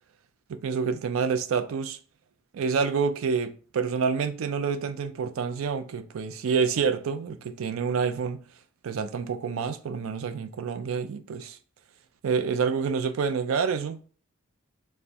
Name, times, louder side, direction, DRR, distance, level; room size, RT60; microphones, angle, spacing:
voice 1, 0.5-2.0 2.5-8.4 8.8-11.6 12.2-14.0, right 5 dB, 75° right, 0.4 m, -28 dB
3.4 x 2.1 x 4.1 m
head